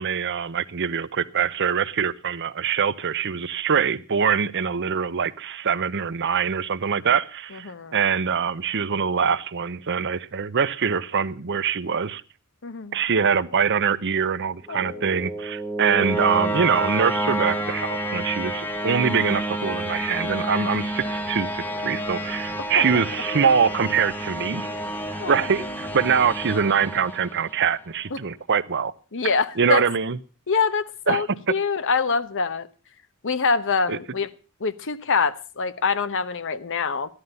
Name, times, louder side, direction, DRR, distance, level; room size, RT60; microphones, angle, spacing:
voice 1, 0.0-12.2 12.9-24.7 25.3-28.9 29.6-30.2 31.1-31.2 33.9-34.0, right 6 dB, 55° right, 0.7 m, -24 dB
voice 2, 7.5-7.9 12.6-13.0 14.7-15.0 22.8-23.0 25.2-25.5 28.1-28.2 29.1-29.8 30.5-32.7 33.2-34.3 34.6-37.1, left 5 dB, 60° left, 1.0 m, -25 dB
sound 1, 14.7-27.7, right 1 dB, 10° left, 1.1 m, -29 dB
15.0 x 11.5 x 5.4 m
head